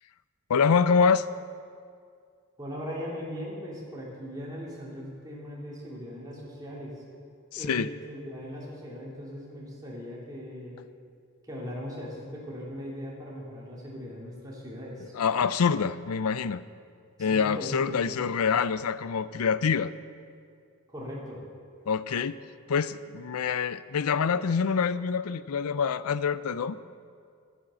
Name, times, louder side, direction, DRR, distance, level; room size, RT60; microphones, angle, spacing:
voice 1, 0.5-1.3 7.5-7.9 15.1-16.6 17.2-19.9 21.9-22.4 22.7-26.8, left 6 dB, 80° left, 15 dB, 0.5 m, -26 dB
voice 2, 2.6-7.0 7.5-10.8 11.4-15.1 17.2-18.2 20.9-21.4, equal, 15° right, -5 dB, 2.9 m, -39 dB
13.0 x 8.4 x 7.7 m, 2.3 s
head